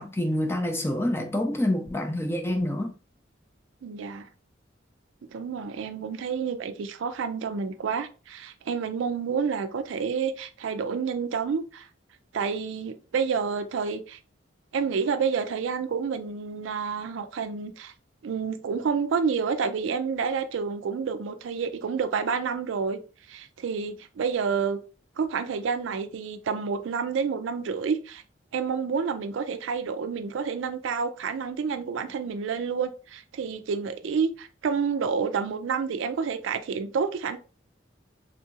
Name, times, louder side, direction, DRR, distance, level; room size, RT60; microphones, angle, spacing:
voice 1, 0.0-2.9, left 1 dB, 10° left, 0.4 m, -27 dB
voice 2, 3.8-4.3 5.3-11.9 12.3-14.2 14.7-17.9 18.2-23.0 23.3-24.8 25.2-28.2 28.5-37.4, right 5 dB, 80° right, 0.4 m, -29 dB
3.6 x 2.7 x 2.4 m
head